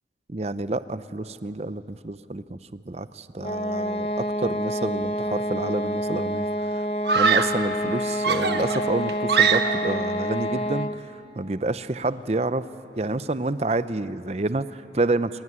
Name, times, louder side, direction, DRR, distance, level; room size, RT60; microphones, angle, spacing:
voice 1, 0.3-6.9 7.1-11.1 11.4-12.7 13.0-15.4, right 2 dB, 35° right, 13 dB, 0.6 m, -28 dB
sound 1, 3.4-11.1, equal, 35° left, 1.0 m, -28 dB
Screaming, 5.5-6.0 7.0-7.7 8.2-10.0, right 6 dB, 70° right, 1.3 m, -23 dB
25.5 x 21.0 x 9.6 m, 2.6 s
head